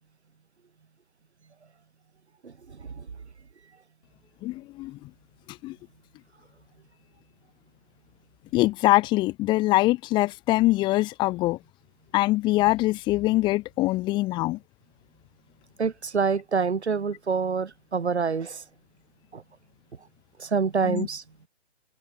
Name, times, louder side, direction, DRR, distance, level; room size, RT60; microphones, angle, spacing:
voice 1, 4.4-5.0 5.6-5.8 8.5-11.6 12.1-14.6 20.8-21.1, left 18 dB, 15° left, 1.9 m, -23 dB
voice 2, 15.8-18.6 19.3-19.4 20.4-21.2, right 5 dB, 70° right, 3.3 m, -26 dB
hypercardioid pair, 155°, 35 cm